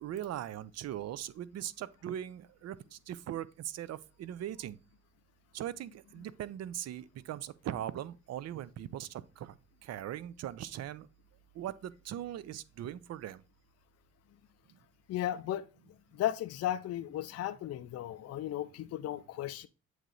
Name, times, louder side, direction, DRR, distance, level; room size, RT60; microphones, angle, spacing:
voice 1, 0.0-4.8 5.5-9.5 9.8-11.1 11.5-13.4, right 11 dB, 60° right, 0.5 m, -40 dB
voice 2, 15.1-15.7 16.1-19.7, left 12 dB, 55° left, 0.4 m, -35 dB
7.9 x 3.1 x 3.8 m
cardioid pair, 90°, 30 cm